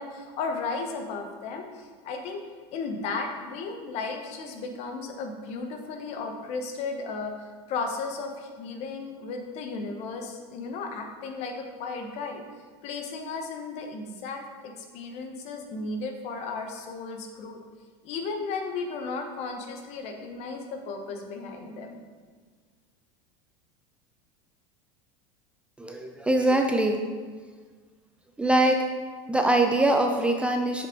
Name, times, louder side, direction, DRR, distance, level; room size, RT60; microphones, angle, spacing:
voice 1, 0.0-2.4 2.7-12.4 12.8-17.6 18.0-22.0, left 4 dB, 50° left, 4 dB, 1.2 m, -35 dB
voice 2, 25.8-27.0 28.4-28.8 29.3-30.9, right 1 dB, 10° right, 3 dB, 0.5 m, -23 dB
7.5 x 6.4 x 3.9 m, 1.5 s
supercardioid pair, 130°, 14 cm